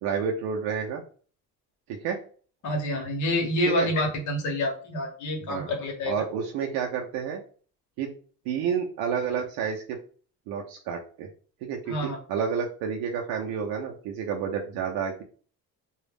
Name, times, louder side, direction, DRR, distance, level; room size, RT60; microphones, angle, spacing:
voice 1, 0.0-1.0 1.9-2.2 3.7-3.9 5.5-5.7 6.1-7.4 8.0-8.1 8.5-10.0 10.5-11.3 11.6-15.2, right 7 dB, 80° right, 1 dB, 0.6 m, -30 dB
voice 2, 2.6-6.2 11.9-12.2, left 1 dB, 55° left, 1 dB, 0.9 m, -28 dB
2.3 x 2.0 x 3.2 m, 0.41 s
cardioid pair, 160°, 36 cm